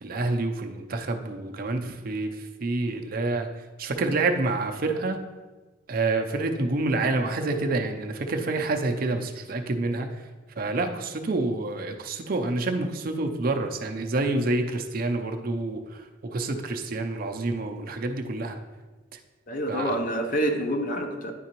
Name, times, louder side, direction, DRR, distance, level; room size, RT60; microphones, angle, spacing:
voice 1, 0.0-3.5 3.8-5.2 5.9-10.3 10.6-18.6 19.7-19.9, right 2 dB, 45° right, 4 dB, 0.5 m, -28 dB
voice 2, 19.5-21.3, right 1 dB, 45° left, 4 dB, 0.6 m, -27 dB
10.0 x 3.7 x 2.9 m, 1.3 s
head